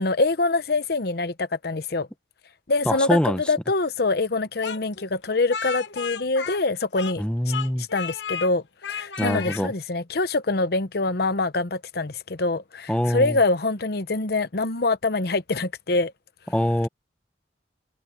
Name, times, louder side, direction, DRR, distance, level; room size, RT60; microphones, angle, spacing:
voice 1, 0.0-2.1 2.7-7.2 7.8-8.6 8.9-16.1, left 3 dB, 60° left, 0.9 m, -25 dB
voice 2, 2.8-3.4 7.2-7.9 9.2-9.7 12.9-13.4 16.5-16.9, equal, 5° left, 1.0 m, -23 dB
Speech, 4.6-7.2 7.5-8.5 8.8-9.6, left 7 dB, 90° left, 0.9 m, -33 dB
head